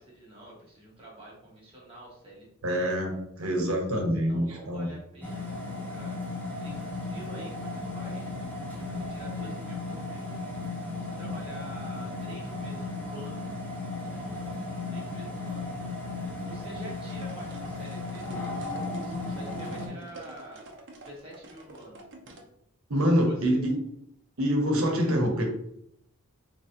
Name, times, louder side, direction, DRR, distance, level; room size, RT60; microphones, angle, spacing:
voice 1, 0.0-2.9 3.4-6.2 6.6-8.3 8.8-10.4 10.9-13.6 14.0-15.7 16.3-18.3 18.7-22.0 23.2-23.6 25.2-25.4, right 1 dB, 25° right, -5 dB, 1.4 m, -48 dB
voice 2, 2.6-3.1 3.4-4.9 22.9-23.8 24.4-25.4, equal, 80° right, 1 dB, 1.0 m, -25 dB
sound 1, 5.2-19.9, left 3 dB, 10° left, 0.7 m, -35 dB
sound 2, 17.0-22.5, right 1 dB, 55° right, 0.7 m, -48 dB
3.9 x 3.1 x 2.7 m, 0.73 s
head